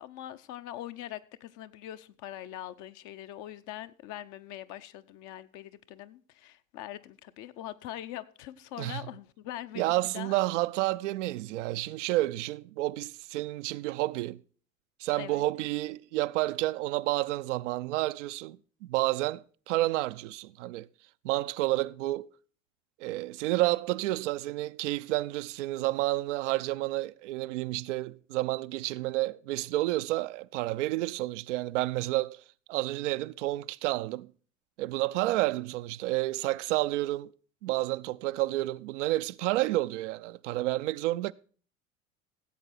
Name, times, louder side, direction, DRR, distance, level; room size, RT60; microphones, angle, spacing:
voice 1, 0.0-10.4 15.1-15.4, left 13 dB, 45° left, 0.8 m, -42 dB
voice 2, 9.8-14.4 15.0-20.9 21.2-22.3 23.0-32.4 32.7-34.3 34.8-37.3 37.6-41.3, right 17 dB, 60° right, 0.5 m, -30 dB
15.5 x 8.0 x 4.2 m
figure-of-eight pair, 75°, 40 cm